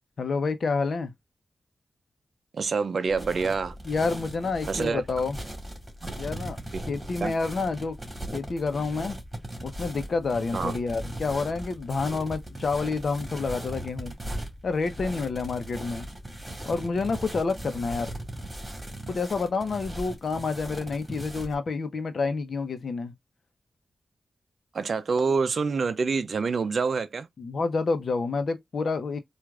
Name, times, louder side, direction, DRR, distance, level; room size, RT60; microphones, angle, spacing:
voice 1, 0.2-1.1 3.9-5.4 6.2-6.6 6.9-8.0 8.3-9.2 9.6-14.1 14.6-16.1 16.6-18.2 19.1-23.1 27.4-29.2, left 4 dB, 65° left, 0.8 m, -28 dB
voice 2, 2.5-3.8 4.7-5.0 6.0-6.1 6.7-6.9 7.2-7.3 10.5-10.7 24.7-27.3, right 4 dB, 65° right, 0.4 m, -26 dB
sound 1, 3.1-19.2, left 1 dB, 20° left, 1.7 m, -47 dB
sound 2, 3.1-21.6, right 1 dB, 20° right, 1.9 m, -39 dB
4.5 x 2.5 x 2.4 m
cardioid pair, 60°, 0 cm